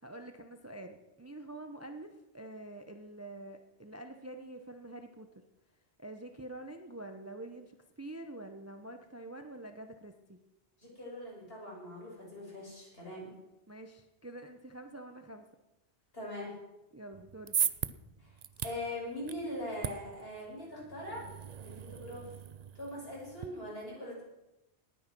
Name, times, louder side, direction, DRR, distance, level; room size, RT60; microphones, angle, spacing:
voice 1, 0.0-5.4 6.0-10.4 13.7-15.5 16.9-17.6, right 1 dB, 15° right, 6 dB, 0.8 m, -47 dB
voice 2, 10.8-13.3 16.1-16.5 18.2-18.3 18.6-21.3 21.6-22.3 22.7-24.2, left 1 dB, 55° left, -4 dB, 6.5 m, -41 dB
sound 1, 17.1-23.5, right 8 dB, 50° right, 0.5 m, -39 dB
18.5 x 9.4 x 6.1 m, 0.96 s
omnidirectional pair, 1.2 m